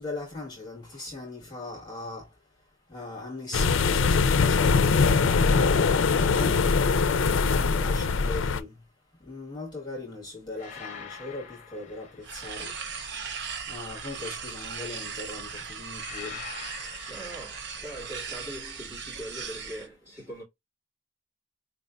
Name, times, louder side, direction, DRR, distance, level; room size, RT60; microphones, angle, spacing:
voice 1, 0.0-2.3 2.9-5.2 6.2-6.8 7.5-8.8 9.2-12.7 13.7-16.4, left 2 dB, 20° left, 1.7 m, -39 dB
sound 1, 3.5-8.6, left 4 dB, 75° left, 0.5 m, -22 dB
voice 2, 6.1-6.7 17.1-20.4, right 1 dB, 15° right, 2.2 m, -42 dB
sound 2, 6.7-6.8 10.6-12.7 16.0-18.0, left 6 dB, 40° left, 1.0 m, -44 dB
sound 3, 12.2-19.9, right 6 dB, 60° right, 0.7 m, -38 dB
4.5 x 3.3 x 2.5 m
head